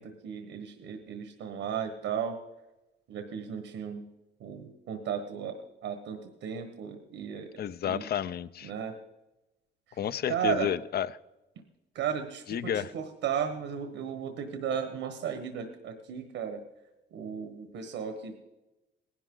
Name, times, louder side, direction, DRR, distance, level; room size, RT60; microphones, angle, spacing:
voice 1, 0.0-2.4 3.1-4.0 4.4-7.5 7.8-8.0 8.6-9.0 9.9-10.0 10.3-10.7 11.9-16.6 17.1-18.4, right 8 dB, 85° right, 6 dB, 1.3 m, -35 dB
voice 2, 7.6-8.7 10.0-11.1 12.5-12.9, left 9 dB, 50° left, 17 dB, 0.5 m, -31 dB
18.5 x 11.5 x 3.8 m, 1.0 s
cardioid pair, 90°, 20 cm